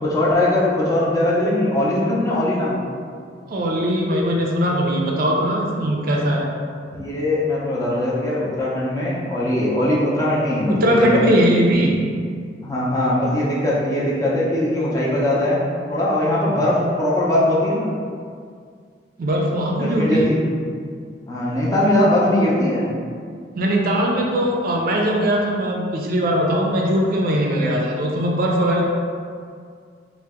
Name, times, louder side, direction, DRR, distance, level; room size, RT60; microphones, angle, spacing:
voice 1, 0.0-2.8 6.9-11.5 12.6-15.6 15.9-17.9 19.8-20.4 21.3-22.9, left 1 dB, 20° left, -6 dB, 0.5 m, -20 dB
voice 2, 3.5-6.5 10.7-12.0 19.2-20.3 23.6-28.8, equal, 55° right, -1 dB, 0.4 m, -20 dB
2.7 x 2.0 x 3.5 m, 2.1 s
head